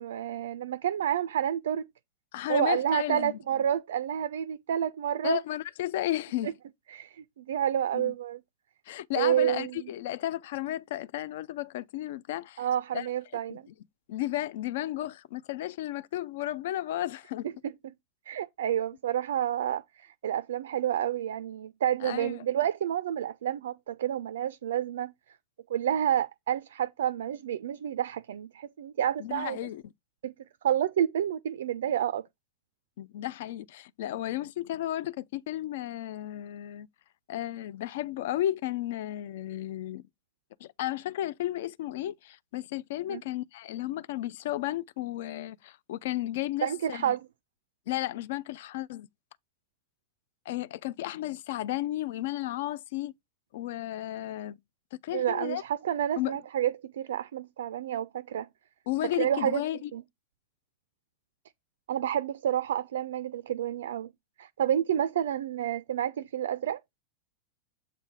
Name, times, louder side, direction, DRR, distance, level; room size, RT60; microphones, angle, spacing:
voice 1, 0.0-1.8 2.5-5.4 6.4-6.5 6.9-8.4 9.2-9.9 12.6-13.6 17.4-17.7 18.3-25.1 25.7-29.6 30.2-30.3 30.6-32.3 43.1-43.2 46.6-47.3 55.1-58.5 59.2-59.6 59.9-60.0 61.9-64.1 64.4-66.8, right 10 dB, 60° right, 0.3 m, -29 dB
voice 2, 2.3-3.4 5.2-6.5 7.9-8.1 8.9-12.7 12.9-13.1 13.5-13.7 14.1-17.5 22.0-22.4 29.2-29.9 33.0-36.9 37.3-40.0 40.6-47.2 47.9-49.1 50.5-53.1 53.5-54.6 55.0-55.6 56.2-56.4 58.9-59.9, left 14 dB, 55° left, 0.4 m, -33 dB
7.7 x 3.2 x 4.5 m
figure-of-eight pair, 90°, 0 cm